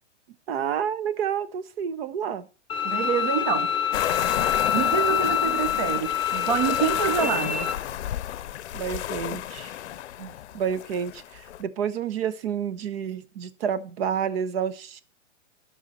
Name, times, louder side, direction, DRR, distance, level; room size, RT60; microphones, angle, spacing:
voice 1, 0.5-2.5 8.7-9.8 10.5-15.0, right 8 dB, 55° right, 0.9 m, -29 dB
Bowed string instrument, 2.7-7.7, left 8 dB, 15° left, 0.7 m, -26 dB
voice 2, 2.8-3.7 4.7-7.7 10.2-10.3, right 8 dB, 25° right, 0.4 m, -27 dB
sound 1, 3.9-11.6, left 12 dB, 65° left, 0.6 m, -32 dB
12.0 x 5.7 x 4.1 m
hypercardioid pair, 140°, 36 cm